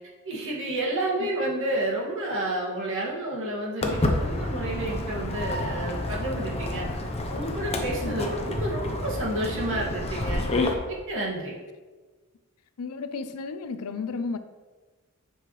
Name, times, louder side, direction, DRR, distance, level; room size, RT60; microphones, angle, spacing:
voice 1, 0.2-6.9 7.3-11.6, right 1 dB, 60° right, -5 dB, 2.0 m, -30 dB
Walk footsteps, 3.8-10.7, left 2 dB, 30° left, 0.8 m, -29 dB
voice 2, 12.8-14.4, left 4 dB, 75° left, 11 dB, 0.5 m, -33 dB
9.2 x 5.6 x 3.2 m, 1.3 s
head